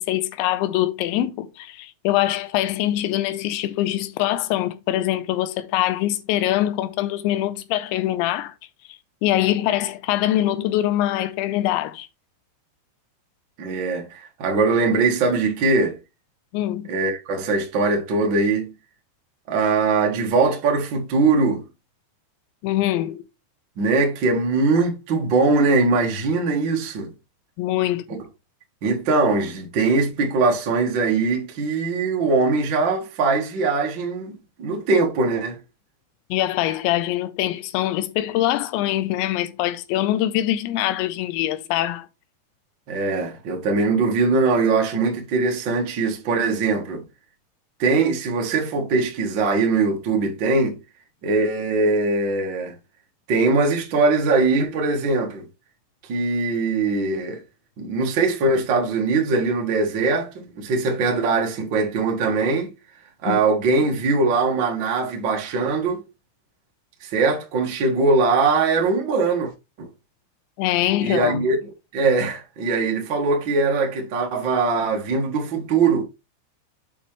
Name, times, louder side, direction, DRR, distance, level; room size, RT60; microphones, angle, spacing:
voice 1, 0.0-8.5 9.2-12.1 16.5-16.9 22.6-23.2 27.6-28.1 36.3-42.1 63.3-63.4 70.6-71.5, left 14 dB, 85° left, 3.0 m, -23 dB
voice 2, 13.6-16.0 16.9-18.7 19.5-21.6 23.8-27.1 28.1-28.2 28.8-35.6 42.9-47.0 47.8-50.8 51.2-52.7 53.3-55.4 56.1-57.4 57.8-62.7 63.2-66.0 67.0-69.5 69.8-69.9 71.0-76.0, right 3 dB, 85° right, 1.0 m, -21 dB
8.4 x 5.2 x 3.3 m
omnidirectional pair, 5.3 m